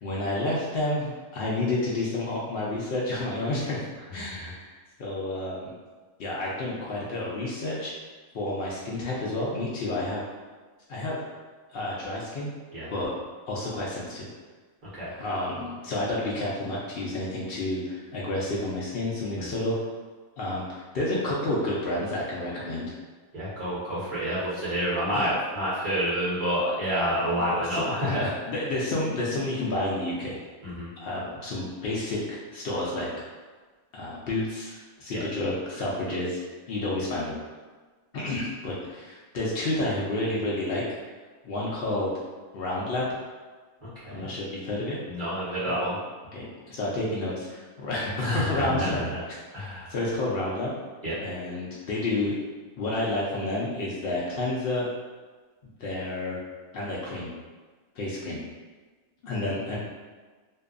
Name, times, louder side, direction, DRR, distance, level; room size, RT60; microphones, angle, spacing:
voice 1, 0.0-3.9 4.1-4.7 5.0-5.7 6.2-7.9 8.3-10.2 10.9-11.2 11.7-12.5 12.9-13.1 13.5-14.2 15.1-19.8 20.4-22.9 23.9-24.1 25.1-25.3 27.6-30.4 31.0-33.1 33.9-36.4 36.7-37.3 38.1-40.8 41.4-42.1 42.5-43.2 44.1-45.0 45.6-45.8 46.3-49.0 49.6-50.7 51.2-52.3 52.8-54.9 55.8-56.4 56.7-57.3 58.0-58.4 59.2-59.8, left 2 dB, 85° left, -5 dB, 0.5 m, -30 dB
voice 2, 23.3-28.3 30.6-30.9 35.1-35.2 43.8-44.3 45.1-46.0 48.2-49.0 49.5-49.9 51.0-51.2, equal, 40° right, -10 dB, 1.0 m, -28 dB
2.6 x 2.2 x 2.4 m, 1.4 s
omnidirectional pair, 1.6 m